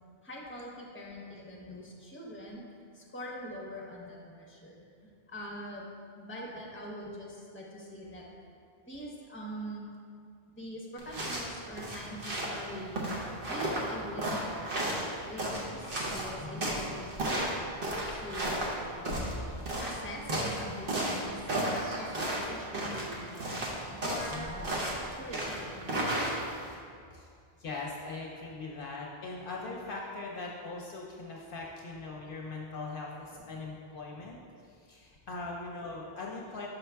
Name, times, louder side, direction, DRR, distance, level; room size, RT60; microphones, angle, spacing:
voice 1, 0.2-2.6 2.9-4.8 5.3-5.9 6.2-8.3 8.9-9.9 10.5-13.2 13.5-15.0 15.3-17.4 18.1-19.4 19.8-23.6 24.0-26.6, equal, 15° left, -3 dB, 0.9 m, -43 dB
sound 1, 11.0-26.7, right 1 dB, 60° right, 1.1 m, -34 dB
voice 2, 16.4-16.8 24.3-24.6 27.1-27.3 27.6-34.4 34.6-36.7, left 3 dB, 65° left, -1 dB, 0.8 m, -41 dB
5.7 x 5.4 x 3.4 m, 2.3 s
omnidirectional pair, 1.0 m